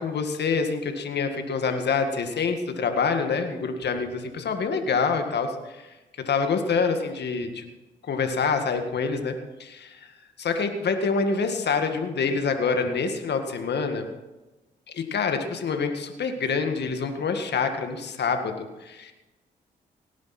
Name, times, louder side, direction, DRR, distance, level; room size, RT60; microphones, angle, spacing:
voice 1, 0.0-5.9 6.3-7.6 8.1-10.0 10.4-14.1 14.9-19.1, left 5 dB, 65° left, 6 dB, 1.9 m, -26 dB
18.5 x 10.5 x 4.4 m, 1.1 s
supercardioid pair, 45°, 19 cm